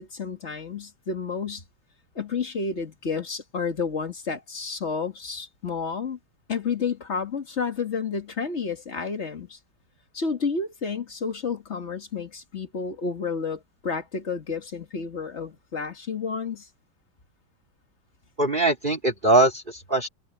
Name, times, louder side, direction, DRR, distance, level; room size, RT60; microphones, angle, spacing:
voice 1, 0.0-1.6 2.2-6.2 6.5-9.6 10.1-16.7, left 5 dB, 35° left, 2.1 m, -30 dB
voice 2, 18.4-20.1, right 2 dB, 25° right, 2.8 m, -21 dB
omnidirectional pair, 2.1 m